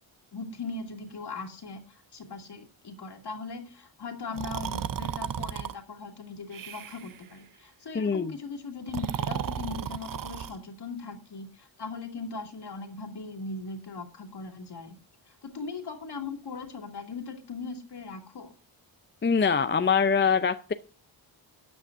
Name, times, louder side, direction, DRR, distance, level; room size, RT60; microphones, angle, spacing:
voice 1, 0.3-15.0 15.3-18.5, left 4 dB, 55° left, 5 dB, 2.4 m, -39 dB
Breathing, 4.3-5.7 6.5-7.2 8.8-10.6, right 9 dB, 45° right, 0.6 m, -34 dB
voice 2, 7.9-8.3 19.2-20.7, left 6 dB, 25° left, 11 dB, 0.5 m, -23 dB
13.5 x 9.4 x 2.5 m, 0.35 s
wide cardioid pair, 135°, 47 cm